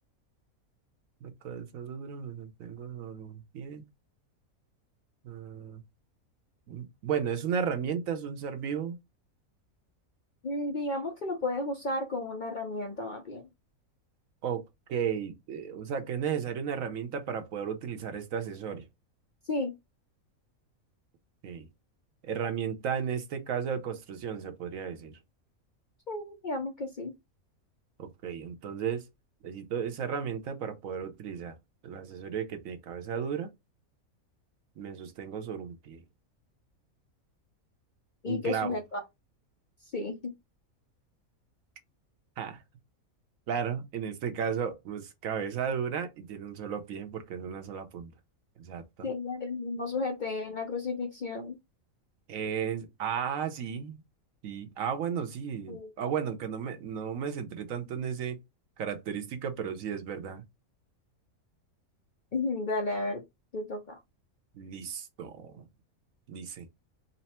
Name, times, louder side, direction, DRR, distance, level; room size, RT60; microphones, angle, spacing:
voice 1, 1.2-3.8 5.2-5.8 6.7-9.0 14.4-14.6 14.9-18.8 21.4-21.7 22.2-25.2 28.0-29.0 29.4-31.5 31.8-33.5 34.8-36.0 38.3-38.8 42.4-42.6 43.5-48.1 48.6-49.1 52.3-54.0 54.4-58.4 58.8-60.4 64.5-65.6 66.3-66.7, right 7 dB, 70° right, 1.1 m, -34 dB
voice 2, 10.4-13.4 19.5-19.7 26.1-27.1 38.2-39.0 39.9-40.3 49.0-51.6 55.7-56.1 62.3-63.2 63.5-64.0, left 2 dB, 55° left, 0.5 m, -33 dB
4.1 x 2.0 x 4.1 m
omnidirectional pair, 1.5 m